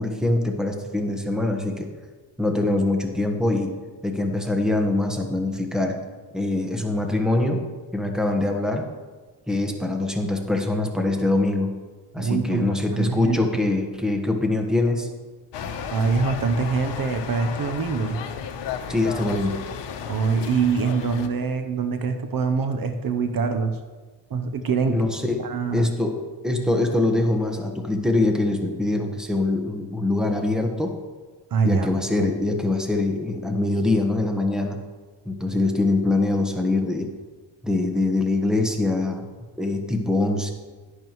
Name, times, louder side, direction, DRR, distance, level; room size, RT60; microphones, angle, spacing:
voice 1, 0.0-1.9 2.4-3.8 4.0-6.0 6.3-7.6 7.9-8.9 9.5-11.7 12.1-15.1 15.6-15.7 18.9-19.6 24.9-25.4 25.7-26.2 26.4-30.9 31.6-34.8 35.2-37.1 37.6-39.2 39.6-40.5, left 2 dB, ahead, 3 dB, 1.2 m, -23 dB
voice 2, 12.2-13.4 15.7-18.2 20.1-23.8 24.3-25.0 25.4-25.9 31.5-31.9 32.2-32.3, right 5 dB, 55° right, 7 dB, 0.8 m, -24 dB
sound 1, 15.5-21.3, left 7 dB, 80° left, 0.9 m, -33 dB
11.0 x 11.0 x 3.1 m, 1.4 s
cardioid pair, 115°, 42 cm